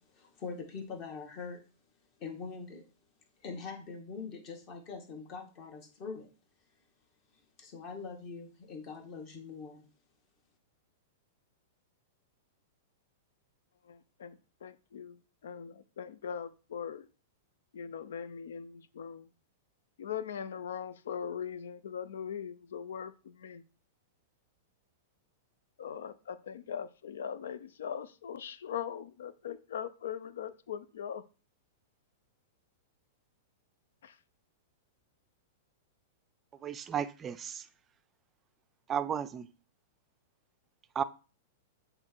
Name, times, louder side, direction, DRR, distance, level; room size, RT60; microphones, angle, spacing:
voice 1, 0.0-1.6 2.2-2.8 3.4-6.3 7.6-9.9, left 5 dB, 40° left, 1.7 m, -43 dB
voice 2, 13.9-15.2 15.4-17.1 17.7-19.3 20.0-23.6 25.8-31.2 34.0-34.1, left 8 dB, 80° left, 0.5 m, -40 dB
voice 3, 36.6-37.5 38.9-39.5 41.0-41.1, right 8 dB, 25° right, 0.4 m, -33 dB
7.7 x 3.3 x 4.6 m
hypercardioid pair, 130°, 0 cm